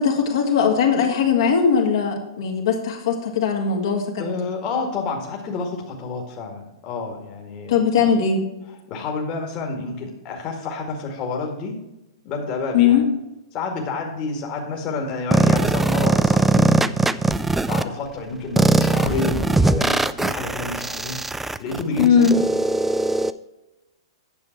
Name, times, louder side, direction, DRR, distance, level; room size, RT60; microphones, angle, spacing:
voice 1, 0.0-4.2 7.7-8.4 12.7-13.1 22.0-22.3, left 6 dB, 65° left, 0 dB, 2.3 m, -19 dB
voice 2, 4.2-8.1 8.9-11.8 12.2-13.0 13.5-16.6 17.3-21.2 21.6-22.5, left 3 dB, 35° left, 1 dB, 2.0 m, -29 dB
sound 1, 15.3-17.8 18.6-23.3, right 3 dB, 5° right, 0.4 m, -20 dB
9.8 x 6.8 x 4.5 m, 0.96 s
hypercardioid pair, 110°, 3 cm